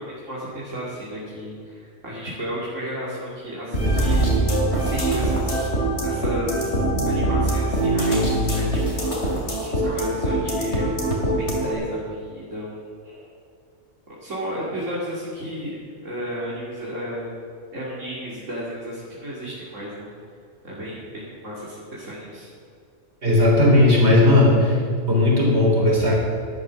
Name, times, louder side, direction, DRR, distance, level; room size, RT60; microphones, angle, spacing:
voice 1, 0.0-4.3 4.7-5.6 6.0-12.8 13.0-13.3 14.1-15.8 16.0-17.4 17.7-20.1 20.6-22.5, equal, 75° right, -7 dB, 3.0 m, -33 dB
sound 1, 3.7-11.7, right 1 dB, 60° left, 2.8 m, -22 dB
voice 2, 23.2-24.8 25.1-26.2, left 1 dB, 60° right, -3 dB, 4.0 m, -16 dB
12.5 x 11.0 x 6.4 m, 2.3 s
omnidirectional pair, 1.3 m